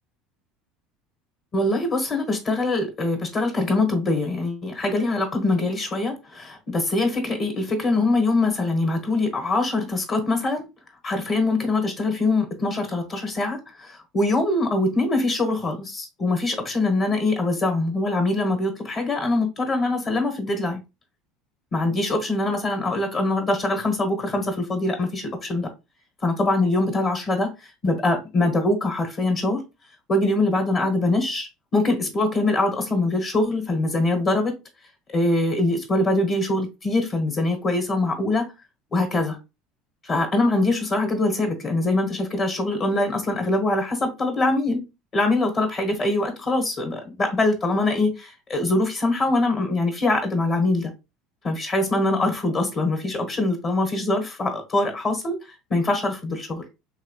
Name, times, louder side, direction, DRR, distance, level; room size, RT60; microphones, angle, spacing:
voice 1, 1.5-10.7 11.0-20.8 21.7-25.7 26.2-29.6 30.1-34.5 35.1-38.5 38.9-39.4 40.0-44.8 45.1-50.9 51.4-56.6, left 2 dB, 40° left, 1.0 m, -23 dB
2.9 x 2.9 x 2.8 m
hypercardioid pair, 75°, 0 cm